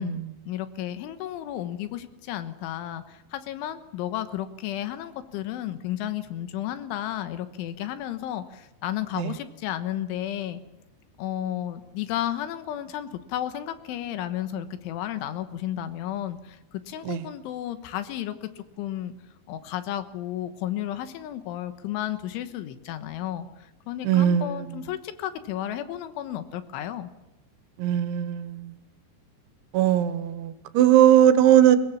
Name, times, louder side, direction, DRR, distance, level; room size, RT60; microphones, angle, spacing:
voice 1, 0.0-10.6 11.2-19.1 19.5-27.1, left 12 dB, 85° left, 11 dB, 3.7 m, -33 dB
voice 2, 24.0-24.7 27.8-28.7 29.7-31.8, right 11 dB, 80° right, 12 dB, 3.5 m, -19 dB
23.0 x 18.5 x 7.3 m, 0.96 s
omnidirectional pair, 5.4 m